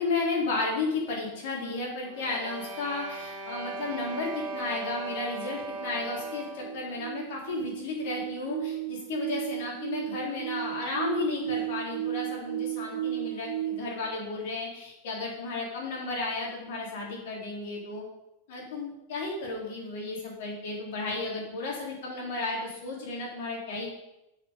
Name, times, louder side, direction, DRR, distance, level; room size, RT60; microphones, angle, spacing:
voice 1, 0.0-18.0 18.5-23.9, left 3 dB, 55° left, -2 dB, 4.0 m, -33 dB
sound 1, 2.1-6.8, right 3 dB, 50° right, 2.3 m, -38 dB
sound 2, 5.7-13.8, right 12 dB, 70° right, 1.1 m, -34 dB
9.1 x 8.4 x 5.3 m, 0.90 s
figure-of-eight pair, 90°, 0 cm